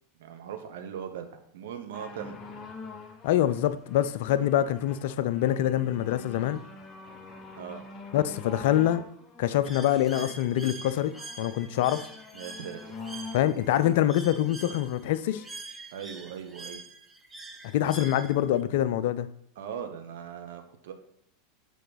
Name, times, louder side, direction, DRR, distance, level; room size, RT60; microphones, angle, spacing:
voice 1, 0.2-2.4 7.6-7.8 12.3-13.0 15.9-16.8 17.8-18.0 19.6-20.9, right 8 dB, 60° right, 6 dB, 0.8 m, -39 dB
sound 1, 1.9-15.5 16.3-16.4, left 3 dB, 25° left, 1.0 m, -46 dB
voice 2, 3.2-6.6 8.1-9.0 9.4-12.0 13.3-15.4 17.7-19.3, left 12 dB, 55° left, 14 dB, 0.4 m, -25 dB
Bird, 9.6-18.6, right 3 dB, 10° right, 0.8 m, -45 dB
6.5 x 4.9 x 4.0 m, 0.72 s
figure-of-eight pair, 85°, 0 cm